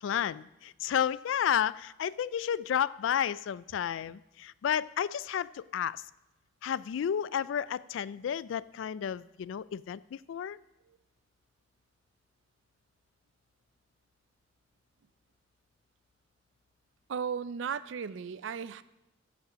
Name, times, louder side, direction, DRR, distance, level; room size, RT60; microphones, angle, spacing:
voice 1, 0.0-6.0 6.6-10.6, left 9 dB, 80° left, 19 dB, 0.3 m, -32 dB
voice 2, 17.1-18.8, right 7 dB, 75° right, 16 dB, 0.4 m, -35 dB
14.5 x 5.4 x 5.0 m, 0.98 s
head